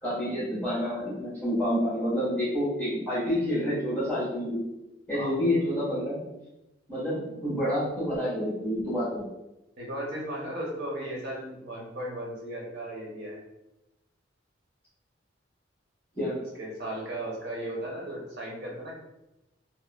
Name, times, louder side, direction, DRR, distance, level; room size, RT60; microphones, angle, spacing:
voice 1, 0.0-4.6 5.1-6.2 6.9-9.3 16.1-16.4, equal, 10° left, -11 dB, 1.3 m, -28 dB
voice 2, 9.8-13.4 16.6-18.9, right 1 dB, 55° right, -3 dB, 0.8 m, -36 dB
2.8 x 2.1 x 2.4 m, 0.95 s
head